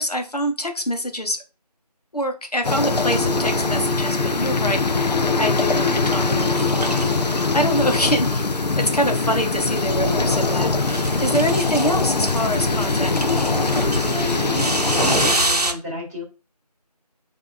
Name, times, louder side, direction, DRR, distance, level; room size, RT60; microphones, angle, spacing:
voice 1, 0.0-1.4 2.1-13.8, equal, 70° left, 4 dB, 1.0 m, -25 dB
sound 1, 2.6-15.3, left 4 dB, 85° left, 0.4 m, -22 dB
sound 2, 2.9-15.7, right 1 dB, 70° right, 0.8 m, -27 dB
voice 2, 14.4-16.2, equal, 25° left, -5 dB, 2.2 m, -32 dB
7.1 x 2.7 x 2.6 m, 0.31 s
figure-of-eight pair, 180°, 21 cm